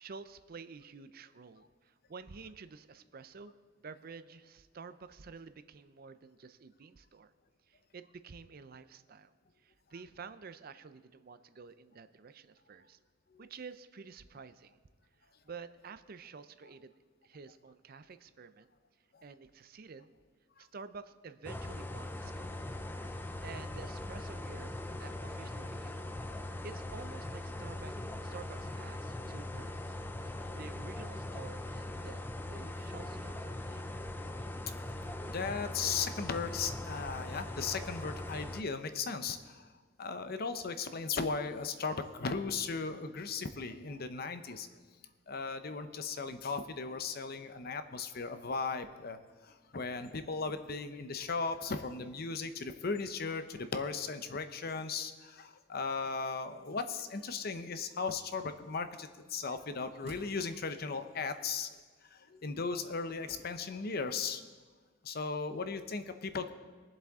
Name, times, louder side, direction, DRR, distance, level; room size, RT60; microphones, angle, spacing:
voice 1, 0.0-3.6 3.8-7.3 7.7-9.3 9.6-13.0 13.4-14.8 15.2-16.9 17.2-18.7 19.2-20.1 20.6-22.8 23.1-26.0 26.3-30.0 30.5-33.9, right 5 dB, 50° right, 12 dB, 0.5 m, -50 dB
sound 1, 21.4-38.6, left 1 dB, 10° left, 0.5 m, -41 dB
voice 2, 35.2-39.7 40.0-44.7 45.3-49.2 49.4-61.7 62.1-64.4 65.0-66.5, left 4 dB, 55° left, 9 dB, 0.7 m, -37 dB
sound 2, 59.7-60.9 63.3-64.2 64.4-64.5, right 1 dB, 35° right, 2.0 m, -58 dB
22.5 x 7.5 x 3.6 m, 1.4 s
head